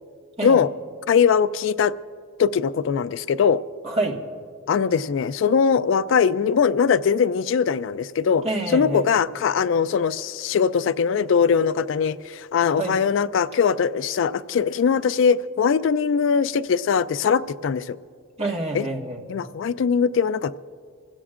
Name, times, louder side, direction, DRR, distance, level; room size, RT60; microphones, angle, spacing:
voice 1, 1.1-1.9 2.4-3.6 4.7-8.4 8.7-18.0 18.7-18.8 19.3-20.6, left 6 dB, 65° left, 16 dB, 0.3 m, -21 dB
voice 2, 3.8-4.2 8.4-9.0 12.7-12.9 18.4-19.2, right 2 dB, 30° right, 0 dB, 1.6 m, -27 dB
25.0 x 16.5 x 2.5 m, 2.3 s
head